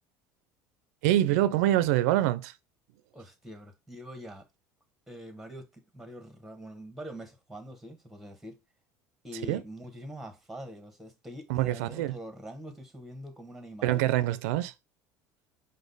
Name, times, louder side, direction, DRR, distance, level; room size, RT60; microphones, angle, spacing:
voice 1, 1.0-2.5 9.5-9.6 11.5-12.1 13.8-14.7, right 14 dB, 90° right, 0.4 m, -25 dB
voice 2, 3.1-4.5 5.1-8.6 9.2-14.0 14.3-14.4, equal, 5° right, 1.0 m, -44 dB
5.1 x 2.1 x 3.9 m
supercardioid pair, 125°, 8 cm